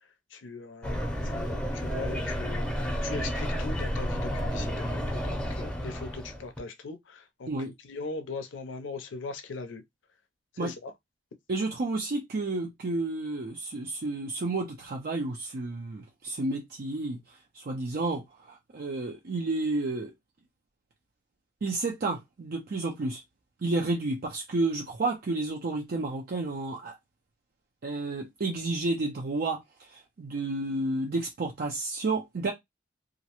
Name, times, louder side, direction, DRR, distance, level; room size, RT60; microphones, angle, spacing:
voice 1, 0.3-7.5 7.8-9.8 10.5-10.9, left 4 dB, 90° left, 0.5 m, -40 dB
sound 1, 0.8-6.6, equal, 5° left, 0.6 m, -31 dB
voice 2, 11.5-20.1 21.6-23.2 23.6-27.0 27.8-32.5, right 2 dB, 55° right, 0.5 m, -31 dB
2.4 x 2.0 x 2.8 m
head